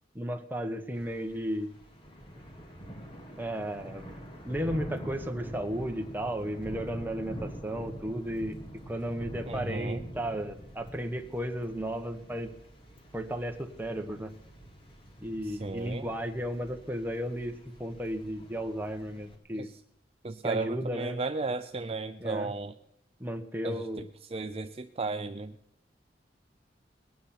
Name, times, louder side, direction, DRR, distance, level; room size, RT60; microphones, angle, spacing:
voice 1, 0.1-1.7 3.4-4.1 4.4-12.5 13.1-14.3 15.2-19.7 20.4-21.2 22.2-22.5 23.2-24.0, equal, 10° right, 5 dB, 1.2 m, -34 dB
Thunder / Rain, 0.9-19.3, equal, 30° left, 2.7 m, -45 dB
voice 2, 9.5-10.0 15.6-16.1 19.6-19.7 20.2-22.7 23.6-24.0 24.3-25.6, right 3 dB, 35° right, 8 dB, 0.5 m, -34 dB
20.0 x 9.4 x 5.9 m, 0.76 s
head